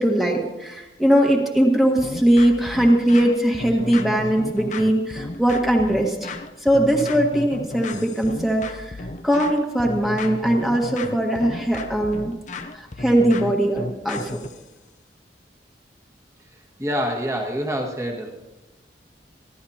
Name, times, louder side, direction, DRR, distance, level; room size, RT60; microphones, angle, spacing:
voice 1, 0.0-6.3 6.6-12.3 12.7-14.3, right 1 dB, ahead, -1 dB, 1.6 m, -20 dB
sound 1, 2.0-14.6, left 2 dB, 45° left, 0.7 m, -34 dB
voice 2, 16.5-18.3, equal, 15° right, 0 dB, 1.8 m, -27 dB
29.5 x 11.5 x 2.9 m, 1.1 s
head